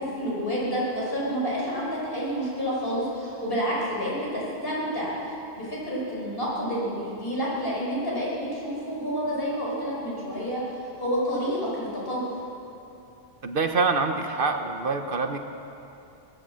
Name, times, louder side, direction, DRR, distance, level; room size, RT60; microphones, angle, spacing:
voice 1, 0.0-10.7 11.0-12.3, equal, 60° left, -6 dB, 5.3 m, -29 dB
voice 2, 13.4-15.4, right 4 dB, 55° right, 6 dB, 1.0 m, -25 dB
20.5 x 9.1 x 7.5 m, 2.8 s
omnidirectional pair, 1.1 m